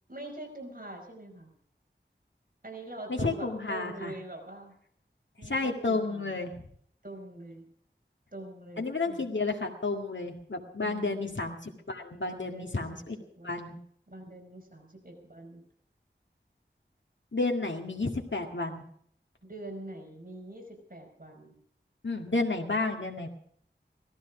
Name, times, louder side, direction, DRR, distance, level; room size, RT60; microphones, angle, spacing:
voice 1, 0.1-1.5 2.6-4.7 5.4-6.4 7.0-7.6 8.3-9.3 10.8-11.4 12.2-13.1 13.4-13.8 14.1-15.6 19.4-21.6, right 1 dB, 45° right, 3 dB, 5.0 m, -44 dB
voice 2, 3.1-4.1 5.4-6.5 8.8-13.2 13.4-13.8 17.3-18.8 22.0-23.3, left 3 dB, 70° left, 2 dB, 2.0 m, -31 dB
17.5 x 14.0 x 5.0 m, 0.63 s
wide cardioid pair, 40°, 20 cm